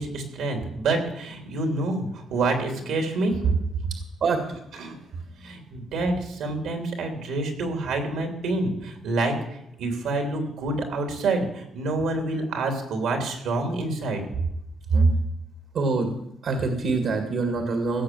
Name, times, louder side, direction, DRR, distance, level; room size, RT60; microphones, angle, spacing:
voice 1, 0.0-3.6 4.7-5.0 5.4-14.2 14.9-15.1, right 3 dB, 80° right, 4 dB, 3.2 m, -27 dB
voice 2, 15.7-16.2 16.4-18.0, right 4 dB, 65° right, 5 dB, 2.0 m, -25 dB
16.5 x 6.6 x 7.7 m, 0.81 s
cardioid pair, 90°, 0 cm